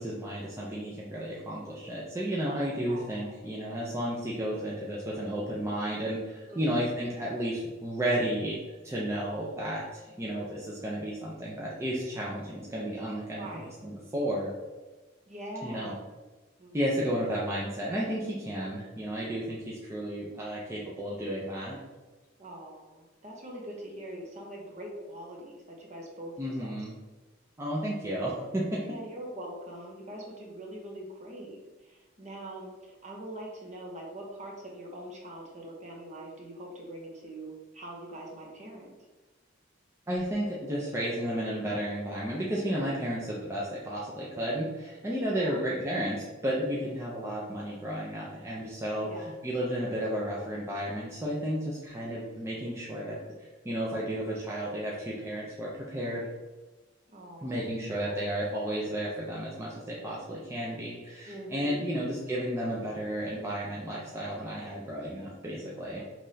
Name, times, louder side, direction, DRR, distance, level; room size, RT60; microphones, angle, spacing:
voice 1, 0.0-14.5 15.6-15.9 16.7-21.8 26.4-26.9 27.6-28.8 40.1-53.2 53.6-56.3 57.4-66.0, equal, 15° right, -6 dB, 0.6 m, -33 dB
voice 2, 2.9-3.4 6.5-6.6 13.4-13.7 15.3-16.2 16.6-17.2 22.4-26.7 28.8-39.0 45.2-45.6 49.0-49.3 57.1-58.3 61.3-61.9 65.9-66.0, right 1 dB, 35° right, -1 dB, 1.0 m, -43 dB
5.7 x 3.2 x 2.8 m, 1.2 s
head